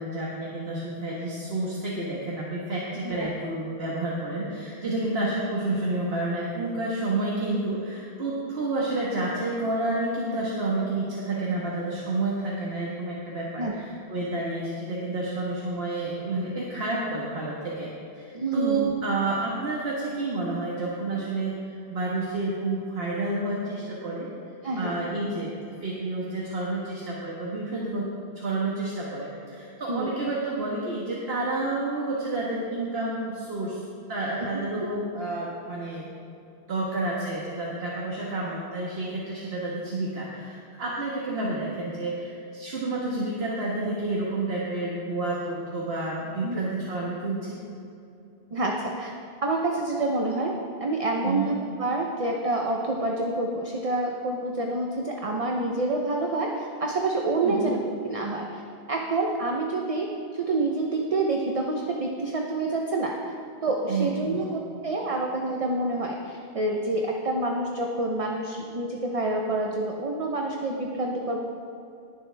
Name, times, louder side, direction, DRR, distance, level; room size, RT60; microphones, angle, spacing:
voice 1, 0.0-24.3 24.8-28.1 28.3-33.8 34.1-36.2 36.7-47.6 51.2-51.5 57.4-57.8 63.9-64.4, right 2 dB, 70° right, -5 dB, 1.6 m, -30 dB
voice 2, 18.3-18.9 24.6-24.9 29.9-30.1 34.7-34.9 46.4-46.7 48.5-49.1 49.4-50.5 50.8-58.6 58.9-63.3 63.6-71.4, right 2 dB, 35° right, 0 dB, 0.8 m, -27 dB
19.0 x 7.2 x 3.4 m, 2.6 s
omnidirectional pair, 1.1 m